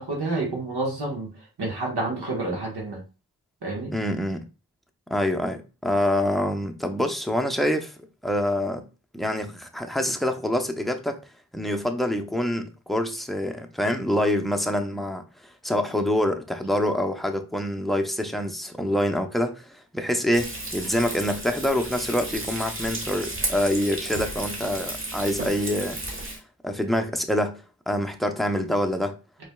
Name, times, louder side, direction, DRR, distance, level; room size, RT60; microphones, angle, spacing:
voice 1, 0.0-1.3 1.6-3.0 3.6-3.9, right 2 dB, 75° right, 1.5 m, -29 dB
voice 2, 3.9-4.4 5.1-8.8 9.1-11.2 11.5-26.0 26.6-29.1, left 1 dB, ahead, 0.6 m, -26 dB
Frying (food), 20.3-26.4, right 1 dB, 30° right, 1.3 m, -33 dB
4.4 x 3.1 x 2.2 m
cardioid pair, 40°, 40 cm